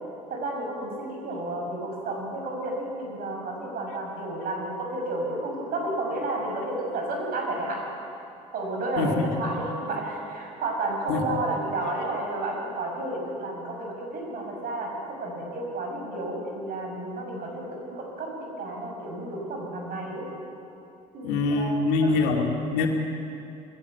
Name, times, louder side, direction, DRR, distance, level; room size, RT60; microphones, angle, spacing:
voice 1, 0.3-7.8 8.5-20.3 21.1-22.3 22.8-22.9, right 2 dB, 55° right, 0 dB, 6.9 m, -32 dB
voice 2, 9.0-9.3 11.1-11.2 21.2-22.9, left 3 dB, 75° left, 1 dB, 2.6 m, -24 dB
20.5 x 16.0 x 8.1 m, 2.7 s
hypercardioid pair, 65°, 18 cm